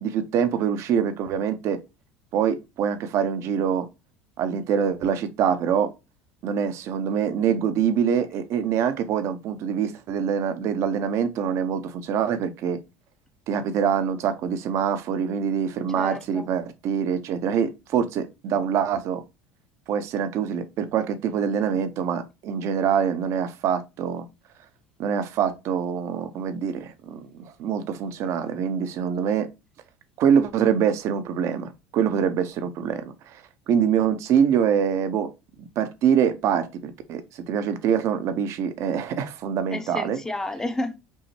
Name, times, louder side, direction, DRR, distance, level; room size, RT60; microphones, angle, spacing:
voice 1, 0.0-1.8 2.3-3.9 4.4-5.9 6.4-12.8 13.5-19.2 19.9-24.3 25.0-29.5 30.2-33.4 33.7-35.3 35.6-40.2, right 8 dB, 55° right, 0.7 m, -25 dB
voice 2, 16.0-16.5 39.7-41.0, left 1 dB, 10° left, 0.6 m, -31 dB
5.3 x 2.1 x 3.1 m
supercardioid pair, 105°, 6 cm